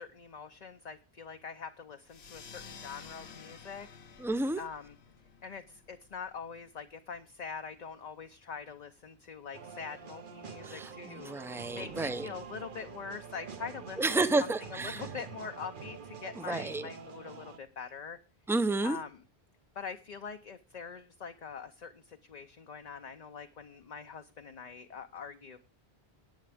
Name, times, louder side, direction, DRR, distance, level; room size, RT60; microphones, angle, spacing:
voice 1, 0.0-3.9 4.6-4.9 5.4-14.0 14.7-18.2 18.8-19.2 19.8-25.6, left 6 dB, 45° left, 0.8 m, -44 dB
sound 1, 2.1-7.2, left 6 dB, 75° left, 1.3 m, -52 dB
voice 2, 4.2-4.6 10.6-12.3 14.0-15.0 16.4-16.9 18.5-19.0, right 2 dB, 5° right, 0.5 m, -31 dB
sound 2, 9.5-17.6, right 6 dB, 55° right, 1.0 m, -46 dB
18.0 x 8.8 x 3.4 m
omnidirectional pair, 1.1 m